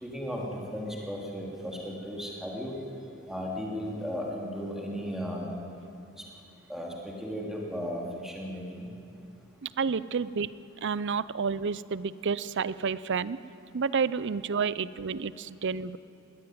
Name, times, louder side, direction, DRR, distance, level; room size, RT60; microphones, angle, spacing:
voice 1, 0.0-0.4 0.7-2.8 3.3-5.5 6.7-8.6, equal, ahead, -2 dB, 3.4 m, -35 dB
voice 2, 9.6-10.5 10.8-13.4 13.7-16.0, right 5 dB, 60° right, 17 dB, 0.6 m, -30 dB
20.5 x 17.5 x 9.4 m, 2.5 s
head